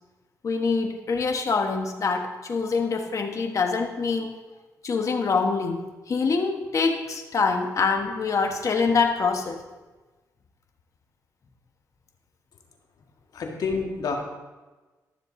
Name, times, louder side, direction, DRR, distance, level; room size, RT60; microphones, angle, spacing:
voice 1, 0.4-4.3 4.8-9.6, left 4 dB, 50° left, 3 dB, 1.4 m, -25 dB
voice 2, 13.3-14.2, left 4 dB, 65° left, 1 dB, 1.8 m, -28 dB
13.0 x 7.0 x 3.9 m, 1.2 s
cardioid pair, 90°, 7 cm